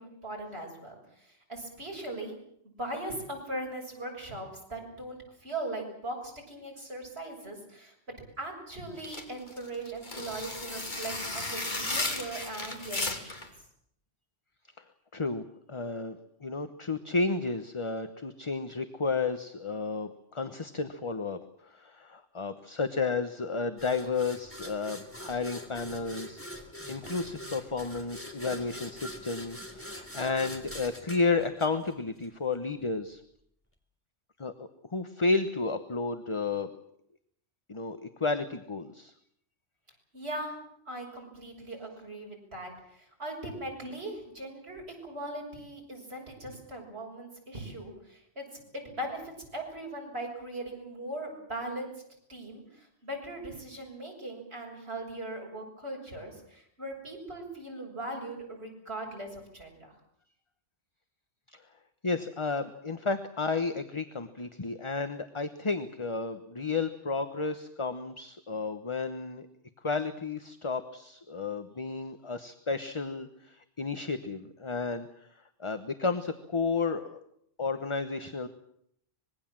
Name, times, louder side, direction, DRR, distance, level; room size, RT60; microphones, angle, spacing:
voice 1, 0.0-2.4 2.8-13.4 40.1-40.6 40.9-51.9 52.3-59.9, right 1 dB, 80° right, 0 dB, 7.4 m, -39 dB
sound 1, 9.0-13.5, left 2 dB, 45° left, 2.9 m, -34 dB
voice 2, 15.1-26.4 26.9-33.2 34.4-36.7 37.7-39.1 61.5-61.6 62.0-69.5 69.8-75.3 75.6-77.2 77.6-78.5, left 4 dB, 30° left, 9 dB, 1.1 m, -32 dB
sound 2, 23.8-32.3, equal, 10° left, 3.3 m, -43 dB
25.0 x 21.0 x 7.5 m, 0.71 s
omnidirectional pair, 1.1 m